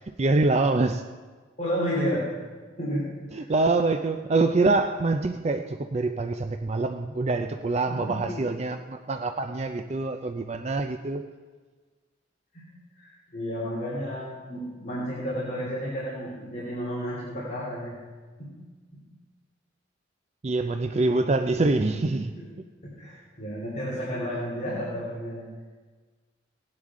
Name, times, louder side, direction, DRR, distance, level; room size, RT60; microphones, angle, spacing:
voice 1, 0.2-1.1 3.3-11.2 20.4-22.3, right 3 dB, 35° right, 0.4 m, -25 dB
voice 2, 1.6-2.3 2.8-3.4 7.9-8.4 12.5-12.6 13.0-18.0 18.4-18.5 21.9-22.0 22.4-22.5 22.8-25.4, equal, 40° left, 3.3 m, -32 dB
17.5 x 10.5 x 3.7 m
head